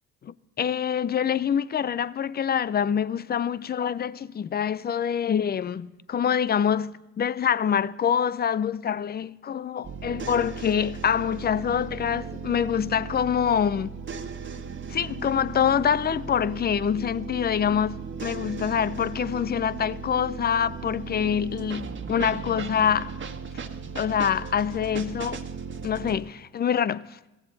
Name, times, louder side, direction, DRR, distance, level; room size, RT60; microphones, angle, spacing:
voice 1, 0.2-13.9 14.9-23.1 24.0-25.4 25.8-27.2, left 8 dB, 25° left, 0.6 m, -25 dB
sound 1, 9.8-26.2, right 6 dB, 30° right, 1.7 m, -37 dB
21.5 x 16.5 x 4.1 m
hypercardioid pair, 60°, 38 cm